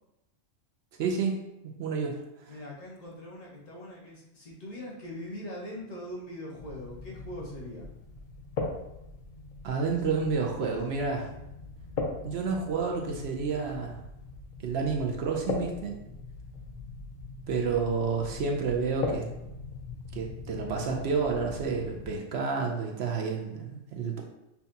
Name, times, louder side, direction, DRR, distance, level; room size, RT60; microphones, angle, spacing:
voice 1, 1.0-1.4 1.8-2.5 9.6-11.3 12.2-14.0 14.6-16.0 17.5-19.2 20.1-24.2, right 5 dB, 65° right, 1 dB, 0.7 m, -30 dB
voice 2, 2.5-7.9, left 1 dB, 90° left, -4 dB, 1.6 m, -41 dB
sound 1, 6.6-22.2, left 3 dB, 50° left, 0.7 m, -40 dB
5.6 x 2.3 x 2.7 m, 0.89 s
omnidirectional pair, 1.3 m